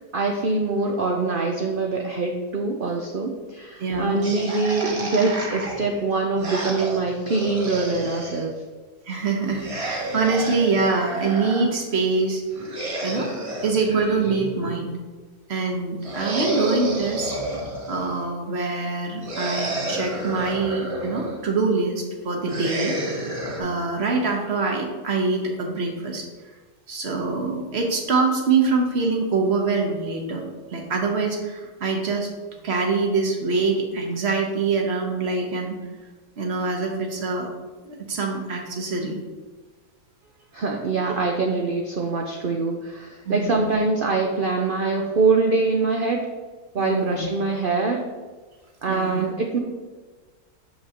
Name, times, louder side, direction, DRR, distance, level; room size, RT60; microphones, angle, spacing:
voice 1, 0.1-8.5 40.5-46.3 46.7-48.0 48.8-49.6, right 3 dB, 65° right, 1 dB, 0.5 m, -24 dB
voice 2, 3.8-4.2 9.1-13.3 13.6-14.9 15.5-17.3 17.9-23.0 23.6-26.2 26.9-30.4 30.7-35.7 36.4-37.5 37.8-39.2 43.2-43.7 46.8-47.3 48.9-49.3, right 4 dB, 50° right, 1 dB, 1.0 m, -24 dB
sound 1, 4.2-8.5 9.5-11.7 12.5-14.9 16.0-18.3 19.2-21.4 22.4-23.6, right 1 dB, 25° right, 0.8 m, -31 dB
6.6 x 5.6 x 2.9 m, 1.4 s
omnidirectional pair, 1.6 m